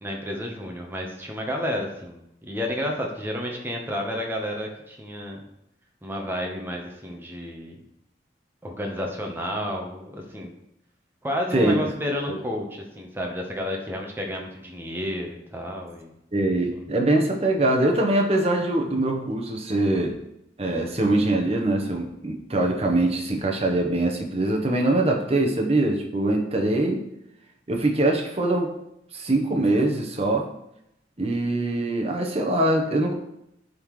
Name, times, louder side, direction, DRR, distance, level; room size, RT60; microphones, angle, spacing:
voice 1, 0.0-5.4 6.0-7.8 8.6-10.5 11.2-16.1 16.7-16.8, equal, 10° right, 1 dB, 1.0 m, -31 dB
voice 2, 16.3-20.2 20.6-27.0 27.7-28.8 29.1-30.5 31.2-33.1, right 2 dB, 35° right, 1 dB, 0.9 m, -23 dB
10.5 x 3.8 x 3.2 m, 0.81 s
head